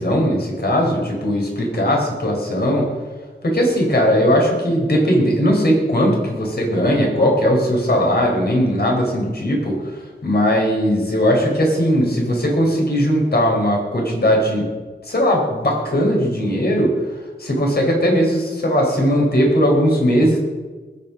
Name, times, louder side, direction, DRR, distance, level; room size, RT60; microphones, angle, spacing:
voice 1, 0.0-2.9 3.4-14.7 15.0-16.9 17.4-20.4, equal, 55° left, 0 dB, 4.6 m, -18 dB
20.0 x 8.8 x 5.3 m, 1.3 s
wide cardioid pair, 90°, 19 cm